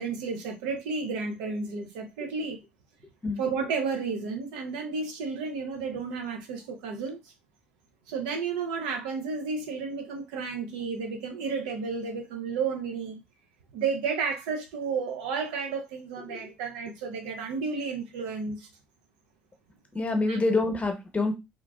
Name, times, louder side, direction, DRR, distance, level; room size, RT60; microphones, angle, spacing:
voice 1, 0.0-2.6 3.4-7.2 8.1-13.2 13.7-18.7 20.3-20.4, right 5 dB, 80° right, 0.6 m, -32 dB
voice 2, 19.9-21.3, left 2 dB, 30° left, 0.9 m, -27 dB
2.9 x 2.3 x 2.3 m
hypercardioid pair, 50°, 5 cm